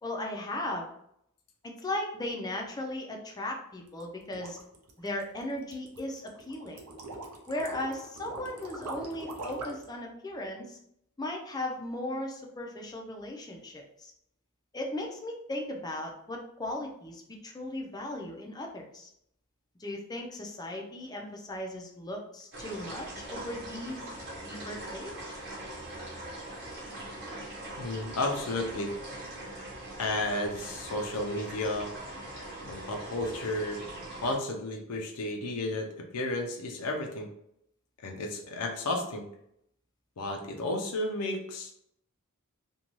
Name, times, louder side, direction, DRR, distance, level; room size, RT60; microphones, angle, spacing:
voice 1, 0.0-0.9 1.6-4.6 5.0-6.8 7.5-10.8 11.2-14.1 14.7-19.1 19.8-24.1 24.5-25.1, left 1 dB, 15° left, 1 dB, 0.4 m, -37 dB
sound 1, 3.9-9.9, right 2 dB, 80° right, 0.5 m, -42 dB
sound 2, 22.5-34.4, right 1 dB, 50° right, 0.9 m, -42 dB
voice 2, 27.8-28.9 30.0-31.9 32.6-33.8 34.2-37.3 38.0-39.3 40.2-41.7, left 2 dB, 80° left, 2 dB, 0.5 m, -32 dB
2.6 x 2.2 x 2.9 m, 0.75 s
head